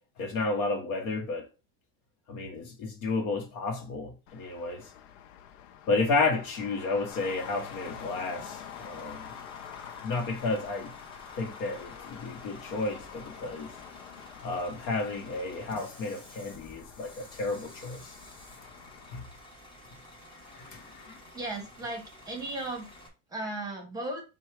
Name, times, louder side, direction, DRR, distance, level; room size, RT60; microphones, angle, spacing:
voice 1, 0.2-1.5 2.3-4.9 5.9-9.3 10.0-10.9 11.4-13.7 14.4-18.1 19.1-19.3 20.3-21.2, left 3 dB, 55° left, 1.1 m, -32 dB
Traffic noise roadway noise, 4.3-19.2, left 9 dB, 90° left, 0.6 m, -47 dB
Bus / Idling, 7.1-23.1, left 1 dB, 15° left, 0.9 m, -51 dB
voice 2, 21.3-22.9 23.3-24.2, right 2 dB, 10° right, 1.2 m, -36 dB
4.5 x 2.3 x 4.5 m
cardioid pair, 145°, 37 cm